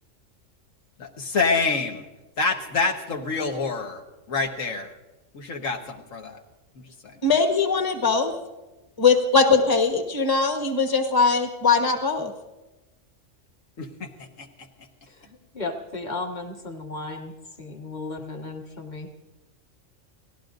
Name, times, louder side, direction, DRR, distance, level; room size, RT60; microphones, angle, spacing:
voice 1, 1.0-2.0 2.4-4.0 4.3-4.9 5.3-6.4 6.8-7.2 13.8-14.5, left 4 dB, 80° left, 3 dB, 1.7 m, -27 dB
voice 2, 7.2-8.3 9.0-12.3, left 4 dB, 20° left, 4 dB, 1.2 m, -21 dB
voice 3, 15.1-17.3 17.6-19.1, left 3 dB, 35° left, 2 dB, 1.7 m, -35 dB
29.0 x 18.0 x 2.6 m, 1.1 s
omnidirectional pair, 1.3 m